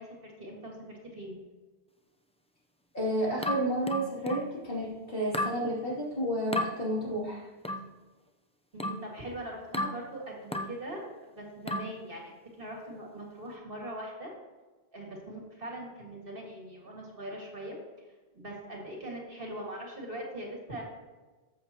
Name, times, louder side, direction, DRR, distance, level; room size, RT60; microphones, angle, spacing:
voice 1, 0.0-1.4 8.7-11.0 11.3-14.3 14.9-17.8 18.3-20.8, right 1 dB, 55° right, -1 dB, 2.1 m, -41 dB
voice 2, 2.9-7.4, right 1 dB, 55° left, -5 dB, 3.1 m, -31 dB
sound 1, 3.4-4.5 5.3-5.6 6.5-6.7 7.6-7.9 8.8-9.1 9.7-10.0 10.5-10.8 11.7-12.0, left 1 dB, 10° left, 0.5 m, -33 dB
13.5 x 7.6 x 2.9 m, 1.3 s
omnidirectional pair, 1.1 m